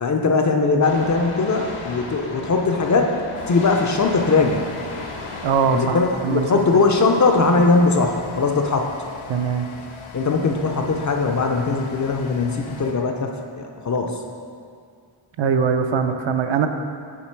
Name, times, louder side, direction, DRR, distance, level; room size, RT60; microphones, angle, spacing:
voice 1, 0.0-4.7 5.7-8.9 10.1-14.2, left 3 dB, 40° left, 2 dB, 0.4 m, -20 dB
sound 1, 0.8-5.8, left 2 dB, 85° left, 1.1 m, -35 dB
sound 2, 3.3-12.9, left 4 dB, 70° left, 0.8 m, -39 dB
voice 2, 5.4-6.0 6.2-6.5 9.3-9.7 15.4-16.7, right 6 dB, 65° right, 6 dB, 0.5 m, -21 dB
7.3 x 4.3 x 4.5 m, 2.2 s
wide cardioid pair, 175°, 50 cm